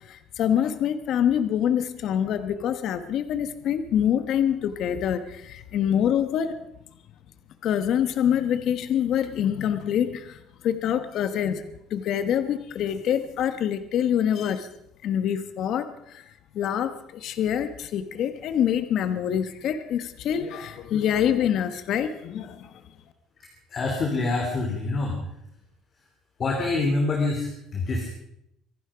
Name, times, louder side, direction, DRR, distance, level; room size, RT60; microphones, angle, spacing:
voice 1, 0.1-6.6 7.6-10.4 10.6-14.7 15.0-15.9 16.1-16.2 16.5-22.7, left 9 dB, 50° left, 11 dB, 1.2 m, -25 dB
voice 2, 23.4-25.2 26.4-28.1, left 3 dB, 35° left, 1 dB, 3.1 m, -26 dB
25.0 x 11.5 x 5.1 m, 0.79 s
cardioid pair, 155°, 0 cm